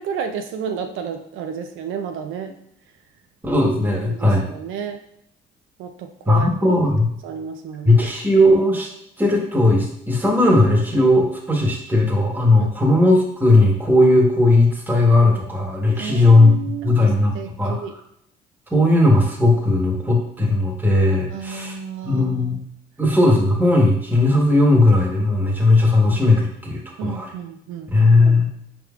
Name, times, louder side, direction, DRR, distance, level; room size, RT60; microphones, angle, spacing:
voice 1, 0.0-2.6 4.0-5.0 5.8-6.8 7.2-8.0 12.6-12.7 15.9-17.0 17.3-18.0 21.3-22.6 27.0-27.9, right 7 dB, 85° right, 6 dB, 0.4 m, -31 dB
voice 2, 3.4-4.4 6.3-7.1 7.8-8.9 9.2-17.8 18.7-21.7 22.0-22.6 23.0-27.3 27.9-28.5, left 2 dB, 10° right, -2 dB, 1.1 m, -17 dB
4.7 x 3.5 x 2.4 m, 0.74 s
cardioid pair, 90°, 20 cm